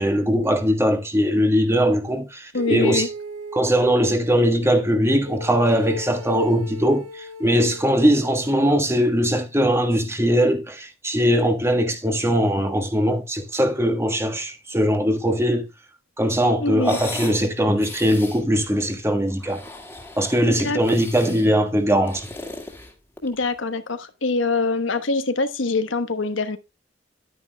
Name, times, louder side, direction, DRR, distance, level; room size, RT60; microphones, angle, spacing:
voice 1, 0.0-3.1 3.5-15.7 16.2-19.6 20.2-22.3, equal, 15° right, 1.4 m, -20 dB
voice 2, 2.5-3.1 16.6-17.0 20.4-20.8 23.2-26.6, left 3 dB, 70° left, 1.1 m, -24 dB
sound 1, 2.6-4.2 5.2-8.8, equal, 85° right, 1.6 m, -37 dB
sound 2, 16.8-17.4 17.8-18.4 19.3-20.5 20.8-21.5 21.9-23.4, left 2 dB, 10° left, 2.0 m, -37 dB
11.0 x 9.5 x 2.2 m
head